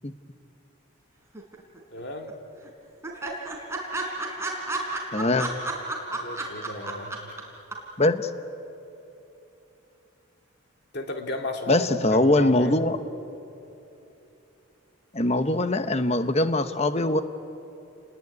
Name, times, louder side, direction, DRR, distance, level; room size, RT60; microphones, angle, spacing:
sound 1, 1.3-2.0 2.3-2.4 2.6-2.7 3.0-7.4 7.7-7.8, right 2 dB, 15° right, 3.7 m, -31 dB
voice 1, 1.9-2.4 6.1-7.2 10.9-11.9 12.1-12.7, left 1 dB, 50° left, 4 dB, 2.4 m, -34 dB
voice 2, 5.1-5.5 8.0-8.3 11.7-13.0 15.1-17.2, left 2 dB, 30° left, 10 dB, 0.9 m, -22 dB
30.0 x 20.5 x 9.5 m, 3.0 s
head